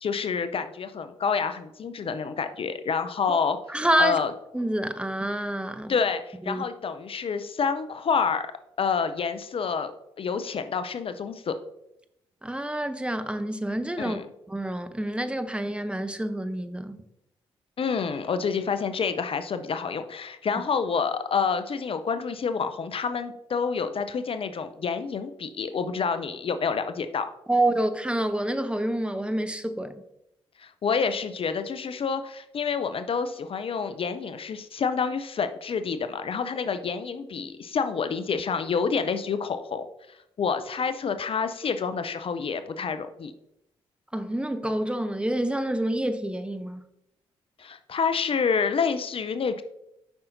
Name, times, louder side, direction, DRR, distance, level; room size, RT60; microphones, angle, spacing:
voice 1, 0.0-3.6 4.0-4.3 5.9-8.5 8.8-9.9 10.2-11.6 14.0-14.3 17.8-27.3 30.6-43.3 47.6-49.6, left 5 dB, 45° left, 0.5 m, -28 dB
voice 2, 3.7-4.2 4.5-5.9 6.5-6.6 12.4-14.2 14.5-17.0 27.5-30.0 44.1-46.8, right 1 dB, 10° right, 0.7 m, -27 dB
7.8 x 5.5 x 2.6 m
hypercardioid pair, 45°, 13 cm